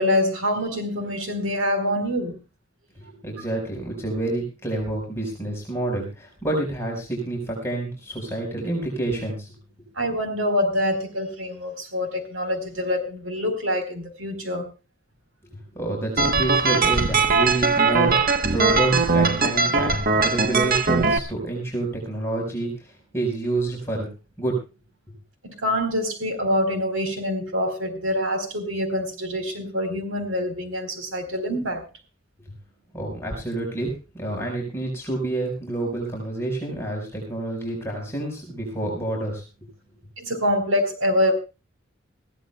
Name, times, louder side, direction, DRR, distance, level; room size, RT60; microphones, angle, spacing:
voice 1, 0.0-2.4 10.0-14.7 25.4-31.8 40.2-41.3, left 1 dB, 90° right, 7 dB, 4.2 m, -25 dB
voice 2, 2.9-9.5 15.7-24.1 24.4-24.6 32.9-39.4, right 2 dB, 15° left, -1 dB, 4.9 m, -28 dB
sound 1, 16.2-21.2, right 4 dB, 45° right, 1.1 m, -20 dB
21.5 x 15.5 x 2.3 m, 0.30 s
head